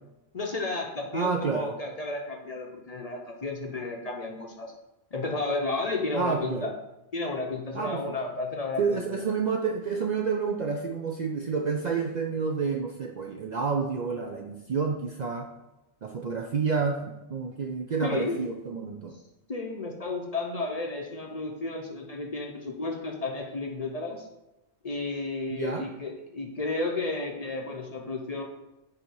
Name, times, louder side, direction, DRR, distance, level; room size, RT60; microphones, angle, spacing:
voice 1, 0.3-4.7 5.1-6.7 7.1-9.3 18.0-18.4 19.5-24.3 24.8-28.4, left 3 dB, 40° left, 1 dB, 0.7 m, -32 dB
voice 2, 1.1-1.7 6.1-6.7 7.7-8.0 8.8-15.5 16.0-19.2 25.5-25.9, right 5 dB, 55° right, 2 dB, 0.5 m, -29 dB
7.7 x 2.8 x 4.6 m, 0.94 s
omnidirectional pair, 1.2 m